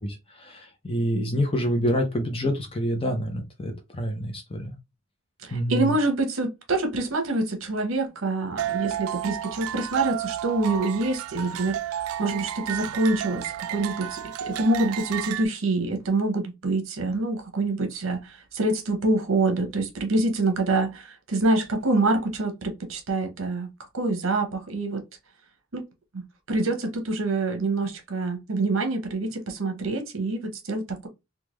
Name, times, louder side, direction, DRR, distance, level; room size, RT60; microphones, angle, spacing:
voice 1, 0.4-4.7 5.5-6.0, equal, 25° left, 0.6 m, -27 dB
voice 2, 5.4-25.0 25.7-25.8 26.1-31.1, right 2 dB, 65° right, 1.0 m, -26 dB
sound 1, 8.6-15.5, right 11 dB, 80° right, 0.3 m, -32 dB
3.6 x 2.3 x 3.1 m
head